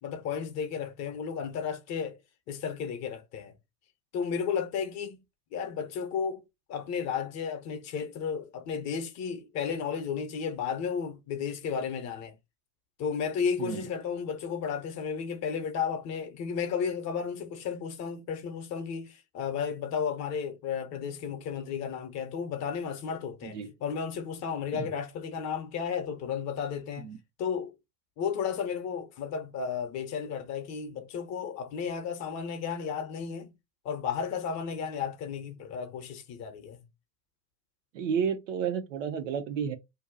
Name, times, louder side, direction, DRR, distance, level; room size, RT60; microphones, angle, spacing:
voice 1, 0.0-2.2 2.5-3.5 4.1-5.2 5.5-6.4 6.7-12.3 13.0-27.1 27.4-27.7 28.2-33.5 33.8-36.8, left 6 dB, 35° left, 0.8 m, -33 dB
voice 2, 37.9-39.7, right 7 dB, 55° right, 0.7 m, -31 dB
2.7 x 2.2 x 3.8 m
hypercardioid pair, 90°, 48 cm